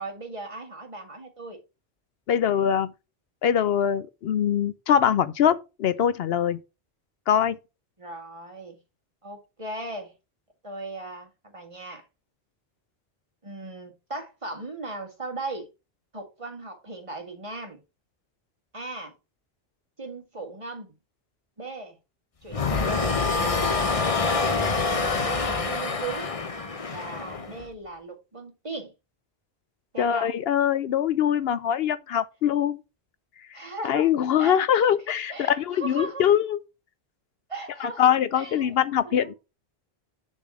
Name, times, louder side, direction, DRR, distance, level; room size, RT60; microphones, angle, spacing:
voice 1, 0.0-1.6 8.0-8.8 9.2-10.1 10.6-12.0 13.4-15.7 16.1-17.8 18.7-19.1 20.0-20.9 21.6-22.0 22.4-23.1 24.2-24.6 25.2-26.4 26.9-28.9 29.9-30.3 33.5-34.1 34.4-35.0 35.3-36.3 37.5-38.8 39.0-39.3, right 3 dB, 30° right, 1.9 m, -37 dB
voice 2, 2.3-2.9 3.4-6.6 7.3-7.6 30.0-32.8 33.8-36.6 37.8-39.3, left 9 dB, 70° left, 0.8 m, -23 dB
sound 1, 22.5-27.7, left 4 dB, 35° left, 0.9 m, -26 dB
6.8 x 4.1 x 6.1 m
omnidirectional pair, 1.1 m